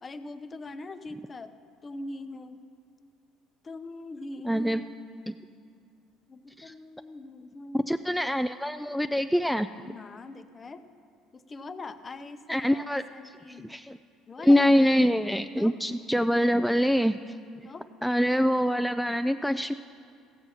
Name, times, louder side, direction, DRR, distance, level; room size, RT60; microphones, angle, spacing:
voice 1, 0.0-1.5 1.8-2.6 3.6-5.0 6.3-8.0 9.8-10.8 11.3-13.7 14.3-14.8 15.6-15.7 17.6-17.9, left 2 dB, 30° left, 10 dB, 0.7 m, -42 dB
voice 2, 4.4-4.8 6.6-6.7 7.7-9.7 12.5-13.0 13.6-14.0 14.5-17.2 18.0-19.7, equal, ahead, 9 dB, 0.3 m, -24 dB
15.5 x 6.8 x 5.6 m, 2.3 s
supercardioid pair, 80°, 0 cm